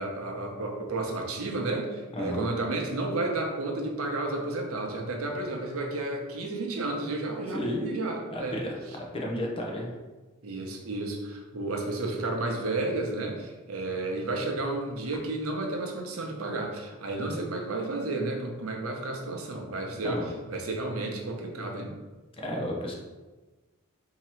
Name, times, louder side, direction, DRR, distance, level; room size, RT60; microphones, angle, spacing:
voice 1, 0.0-8.6 10.4-21.9, right 2 dB, 90° right, 2 dB, 0.8 m, -32 dB
voice 2, 2.1-2.4 7.5-8.0 8.2-8.7 9.1-9.9 17.2-17.4 20.0-20.3 22.4-22.9, left 1 dB, 25° left, -1 dB, 0.7 m, -32 dB
3.8 x 2.9 x 4.3 m, 1.2 s
head